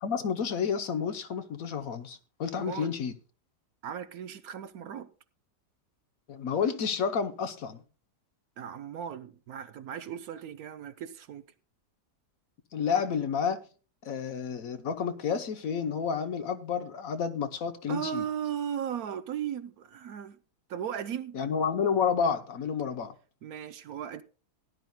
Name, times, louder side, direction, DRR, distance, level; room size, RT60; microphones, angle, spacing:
voice 1, 0.0-3.1 6.3-7.8 12.7-13.6 14.0-18.2 21.3-23.2, left 6 dB, 60° left, 1.2 m, -30 dB
voice 2, 2.5-2.9 3.8-5.1 8.6-11.5 17.9-20.4 20.7-21.4 23.4-24.2, right 9 dB, 70° right, 1.1 m, -36 dB
17.5 x 11.0 x 2.2 m
omnidirectional pair, 1.8 m